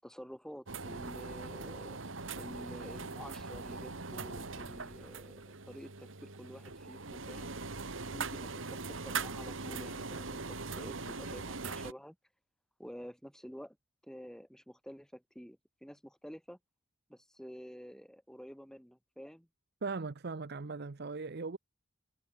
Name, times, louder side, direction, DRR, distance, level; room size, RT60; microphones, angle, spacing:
voice 1, 0.0-2.0 2.4-7.5 8.1-12.2 12.8-13.8 14.0-16.6 17.1-19.5, equal, 5° left, 7.1 m, -49 dB
sound 1, 0.7-11.9, right 4 dB, 70° right, 2.0 m, -41 dB
voice 2, 19.8-21.6, right 4 dB, 50° right, 0.7 m, -39 dB
head